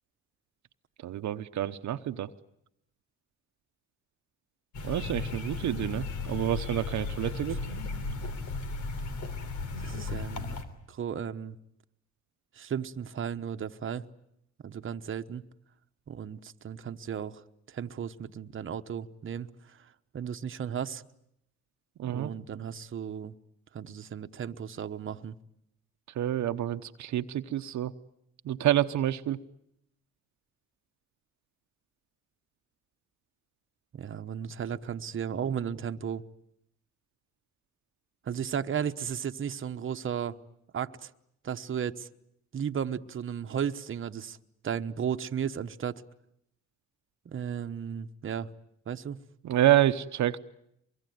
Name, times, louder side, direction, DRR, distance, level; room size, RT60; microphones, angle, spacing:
voice 1, 1.0-2.3 4.8-7.6 22.0-22.3 26.1-27.9 28.4-29.4 49.4-50.4, right 12 dB, 70° right, 0.9 m, -28 dB
sound 1, 4.7-10.6, left 4 dB, 75° left, 3.4 m, -35 dB
voice 2, 9.8-10.6 10.9-11.6 12.5-14.0 14.6-15.4 16.1-17.4 17.7-21.0 22.0-23.3 23.7-25.4 33.9-36.2 38.2-40.4 40.7-41.1 41.4-42.1 42.5-44.4 44.6-46.0 47.2-48.5 48.9-49.2, right 8 dB, 40° right, 1.1 m, -35 dB
24.0 x 22.5 x 9.4 m
cardioid pair, 90°, 30 cm